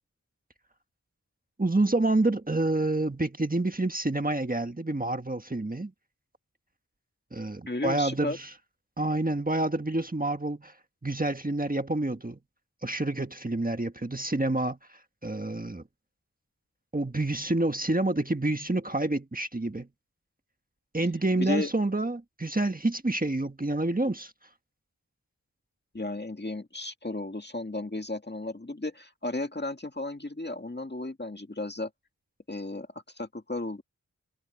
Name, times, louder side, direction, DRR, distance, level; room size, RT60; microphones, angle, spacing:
voice 1, 1.6-5.9 7.3-8.5 9.0-10.7 11.0-12.4 12.8-14.8 15.2-15.8 16.9-19.9 20.9-24.3, right 2 dB, 25° right, 1.5 m, -28 dB
voice 2, 7.7-8.4 21.4-21.7 25.9-31.9 32.5-32.9 33.2-33.8, left 2 dB, 30° left, 1.8 m, -34 dB
wide cardioid pair, 60°, 32 cm